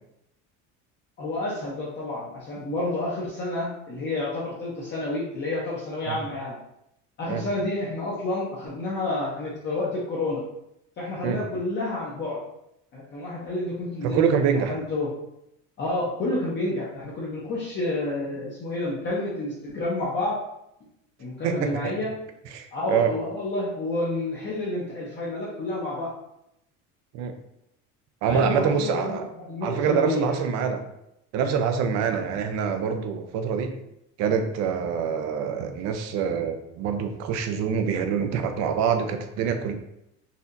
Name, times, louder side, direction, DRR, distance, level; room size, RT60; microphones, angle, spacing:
voice 1, 1.2-6.6 7.2-10.4 11.0-12.4 12.9-15.1 15.8-20.4 21.2-22.1 22.7-26.1 28.2-30.3, left 2 dB, 35° left, -6 dB, 0.8 m, -29 dB
voice 2, 14.0-14.7 21.4-21.9 22.5-23.1 27.1-27.3 28.2-29.2 29.6-30.8 31.3-33.8 34.2-39.7, right 7 dB, 50° right, 6 dB, 0.6 m, -25 dB
4.1 x 2.8 x 2.6 m, 0.81 s
cardioid pair, 145°, 34 cm